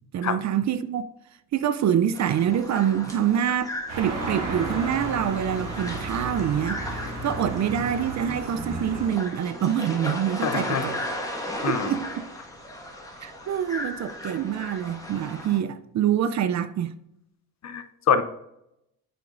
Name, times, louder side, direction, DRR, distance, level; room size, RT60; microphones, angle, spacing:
voice 1, 0.1-1.1 1.5-11.0 11.6-12.2 13.2-17.0, right 9 dB, 45° right, 0.5 m, -26 dB
sound 1, 2.1-15.6, left 1 dB, 10° left, 1.5 m, -36 dB
sound 2, 3.9-9.1, right 2 dB, 90° right, 2.2 m, -33 dB
voice 2, 10.4-10.9 11.6-11.9 17.6-18.2, left 7 dB, 45° left, 0.7 m, -25 dB
7.7 x 5.1 x 2.5 m
supercardioid pair, 65°, 39 cm